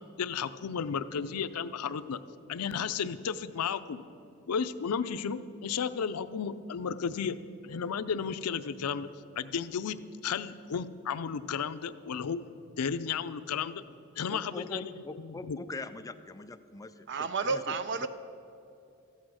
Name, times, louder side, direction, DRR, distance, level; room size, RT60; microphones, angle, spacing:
voice 1, 0.2-2.2 2.5-4.0 4.5-7.4 7.6-9.1 9.4-12.5 12.8-13.8 14.2-14.9 15.2-15.6, left 6 dB, 90° left, 13 dB, 0.5 m, -33 dB
voice 2, 14.3-18.1, left 2 dB, 15° left, 10 dB, 0.3 m, -43 dB
voice 3, 17.1-18.1, right 4 dB, 55° right, 11 dB, 0.6 m, -31 dB
13.5 x 8.4 x 6.3 m, 2.7 s
head